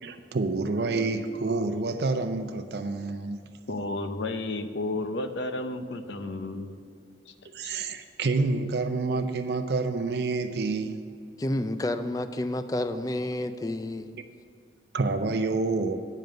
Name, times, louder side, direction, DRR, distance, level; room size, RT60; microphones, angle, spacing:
voice 1, 0.0-3.5 6.6-6.7 7.5-11.0 14.9-16.1, right 3 dB, 65° right, 7 dB, 0.5 m, -28 dB
voice 2, 3.7-6.7 7.3-7.4 7.6-7.8, left 2 dB, 75° left, 9 dB, 0.7 m, -32 dB
voice 3, 11.4-14.1, left 1 dB, 20° left, 10 dB, 0.3 m, -30 dB
9.3 x 5.3 x 7.6 m, 2.4 s
head